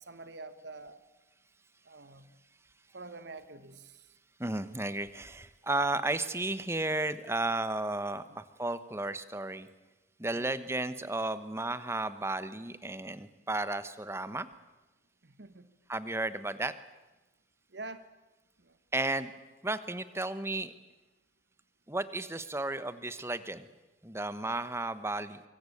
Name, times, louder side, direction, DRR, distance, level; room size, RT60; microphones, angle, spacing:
voice 1, 0.1-1.0 1.8-2.3 2.9-4.1 8.3-8.4 10.3-10.5 15.2-15.7 17.7-18.1 18.6-18.8, right 3 dB, 70° right, 11 dB, 1.5 m, -47 dB
voice 2, 4.4-9.7 10.2-14.5 15.9-16.7 18.9-19.3 19.6-20.7 21.9-23.7 24.0-25.4, right 2 dB, 15° right, 13 dB, 1.0 m, -33 dB
24.0 x 24.0 x 8.6 m, 1.1 s
head